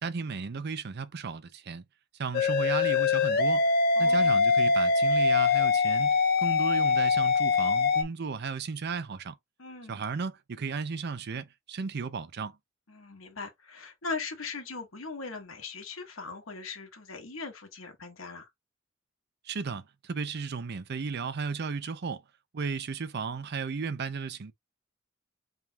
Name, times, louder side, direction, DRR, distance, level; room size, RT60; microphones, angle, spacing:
voice 1, 0.0-1.8 2.2-3.6 4.0-9.3 9.9-12.6 19.5-22.2 22.5-24.5, right 5 dB, 55° right, 0.5 m, -34 dB
sound 1, 2.3-8.0, left 4 dB, 50° left, 0.6 m, -23 dB
voice 2, 4.0-4.4 9.6-10.0 12.9-18.5, left 4 dB, 80° left, 1.4 m, -40 dB
3.5 x 2.3 x 4.4 m
head